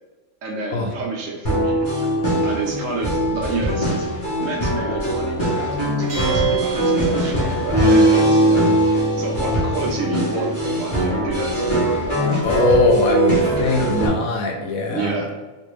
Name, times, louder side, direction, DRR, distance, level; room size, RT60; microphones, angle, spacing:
voice 1, 0.4-1.9 2.4-4.1 4.4-7.4 7.6-12.5 14.9-15.3, right 3 dB, 70° right, -1 dB, 1.0 m, -29 dB
sound 1, 1.4-14.1, right 1 dB, 40° left, 1.0 m, -20 dB
Bell, 6.1-7.7, right 4 dB, 35° right, 0.4 m, -34 dB
voice 2, 12.4-15.2, left 3 dB, 80° left, 3 dB, 1.0 m, -21 dB
3.3 x 2.6 x 3.0 m, 1.2 s
omnidirectional pair, 1.5 m